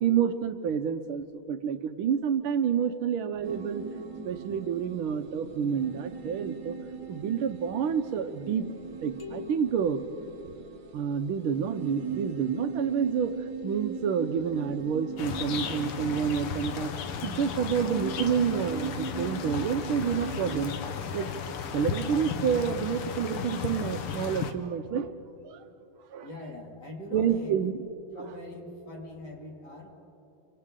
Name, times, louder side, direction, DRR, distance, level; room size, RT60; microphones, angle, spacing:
voice 1, 0.0-3.8 4.2-6.8 7.1-8.7 9.0-10.0 10.9-13.3 13.6-16.9 17.2-20.7 21.1-21.3 21.7-25.1 25.4-25.6 26.1-26.3 27.1-27.8 28.2-28.3, right 7 dB, 75° right, 9 dB, 1.5 m, -29 dB
sound 1, 3.4-20.6, right 5 dB, 50° right, 1.8 m, -39 dB
sound 2, 9.2-11.1, left 6 dB, 15° left, 1.2 m, -46 dB
sound 3, 15.2-24.5, left 7 dB, 90° left, 1.9 m, -35 dB
voice 2, 26.2-27.6 28.1-29.9, left 1 dB, 50° left, -1 dB, 3.2 m, -42 dB
29.0 x 24.5 x 3.7 m, 2.8 s
omnidirectional pair, 2.4 m